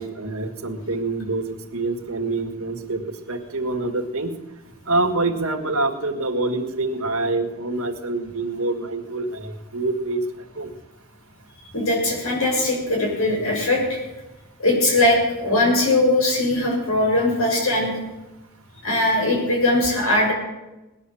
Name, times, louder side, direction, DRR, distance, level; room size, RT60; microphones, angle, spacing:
voice 1, 0.0-3.0 3.3-4.3 4.9-10.2 10.6-10.7, right 2 dB, 80° right, 5 dB, 1.9 m, -26 dB
voice 2, 11.7-14.0 14.6-17.9 18.8-20.3, left 1 dB, 85° left, 0 dB, 6.9 m, -20 dB
19.5 x 10.5 x 7.1 m, 1.0 s
head